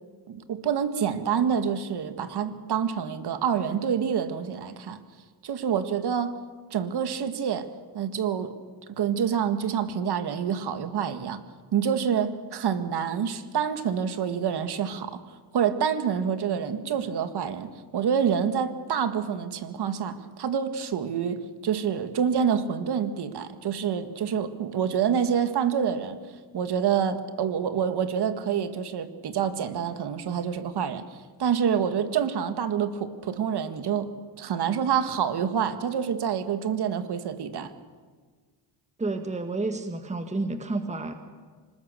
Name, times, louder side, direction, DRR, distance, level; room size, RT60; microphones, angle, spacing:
voice 1, 0.3-5.0 5.4-6.4 6.7-7.7 7.9-8.5 9.0-11.4 11.7-15.2 15.5-26.2 26.5-31.0 31.4-34.1 34.4-37.7, right 8 dB, 55° right, 9 dB, 1.9 m, -27 dB
voice 2, 39.0-41.1, right 2 dB, 15° right, 7 dB, 1.6 m, -30 dB
26.0 x 20.5 x 6.8 m, 1.5 s
cardioid pair, 110°, 47 cm